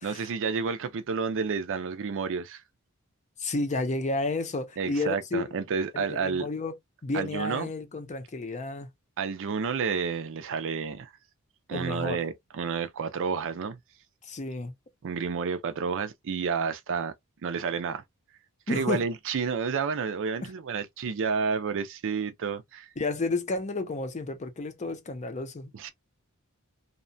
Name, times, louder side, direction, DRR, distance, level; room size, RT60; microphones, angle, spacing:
voice 1, 0.0-2.6 4.8-6.5 7.1-7.7 9.2-11.1 11.7-13.8 15.0-17.1 17.4-18.0 18.7-22.9 25.7-25.9, right 5 dB, 60° right, 0.5 m, -30 dB
voice 2, 3.4-5.4 5.9-6.7 7.0-8.9 11.7-12.2 14.2-14.7 18.7-19.1 20.4-20.5 23.0-25.7, left 2 dB, 30° left, 0.5 m, -31 dB
2.8 x 2.1 x 2.6 m
head